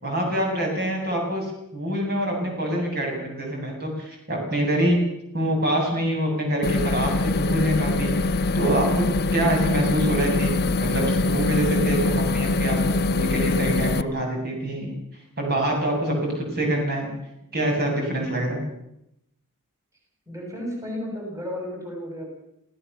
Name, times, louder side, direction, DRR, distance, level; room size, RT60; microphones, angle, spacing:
voice 1, 0.0-5.0 5.3-9.1 9.3-14.9 15.4-17.1 17.5-18.6, right 1 dB, 45° right, 0 dB, 7.9 m, -25 dB
sound 1, 6.6-14.0, left 2 dB, 50° left, 0.7 m, -23 dB
voice 2, 20.3-22.3, left 1 dB, 15° right, 0 dB, 7.0 m, -33 dB
27.0 x 16.5 x 7.0 m, 0.81 s
head